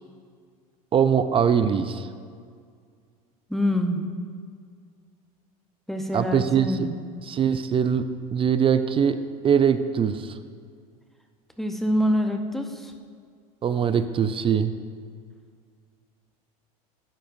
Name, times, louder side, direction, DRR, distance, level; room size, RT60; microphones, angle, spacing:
voice 1, 0.9-2.1 6.1-6.9 7.3-8.0 8.3-9.2 9.4-10.4 13.6-14.7, right 7 dB, 30° right, 11 dB, 0.4 m, -22 dB
voice 2, 3.5-4.1 5.9-6.9 11.6-12.9, equal, ahead, 4 dB, 0.8 m, -25 dB
12.0 x 9.2 x 2.6 m, 2.1 s
hypercardioid pair, 85°, 19 cm